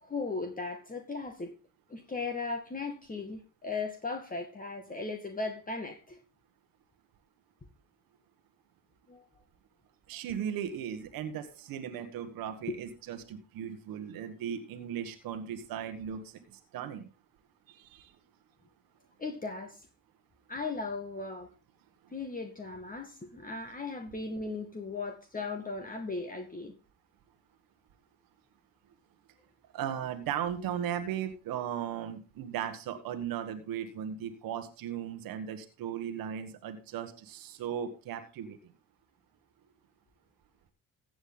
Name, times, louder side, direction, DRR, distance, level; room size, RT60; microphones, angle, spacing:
voice 1, 0.0-1.6 1.9-6.2 9.1-9.3 12.7-12.8 19.2-19.9 20.5-21.5 22.1-26.7, left 3 dB, 25° left, 4 dB, 2.1 m, -37 dB
voice 2, 10.1-17.0 17.7-18.1 29.7-38.6, right 9 dB, 75° right, 8 dB, 1.5 m, -37 dB
15.0 x 8.0 x 3.9 m, 0.33 s
supercardioid pair, 65°, 35 cm